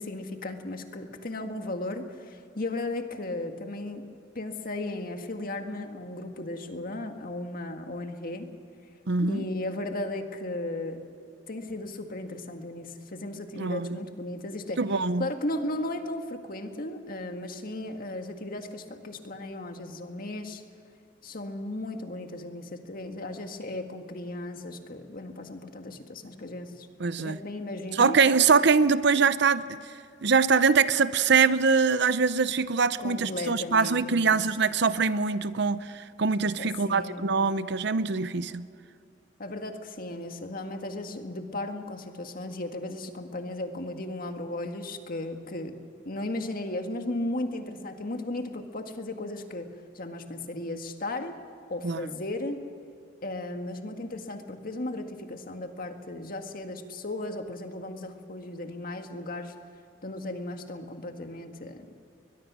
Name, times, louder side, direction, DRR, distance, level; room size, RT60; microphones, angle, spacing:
voice 1, 0.0-4.0 4.4-8.5 9.2-11.0 11.5-14.8 15.2-20.6 21.2-26.9 27.2-28.2 33.0-34.4 36.6-37.3 39.4-45.7 46.1-49.7 50.0-51.4 51.7-52.6 53.2-59.5 60.0-61.9, left 2 dB, 50° left, 1.8 m, -35 dB
voice 2, 9.1-9.5 13.6-14.0 14.8-15.3 27.0-27.4 27.9-29.8 30.2-38.6 51.8-52.0, right 5 dB, 65° right, 0.7 m, -23 dB
22.0 x 21.5 x 6.2 m
head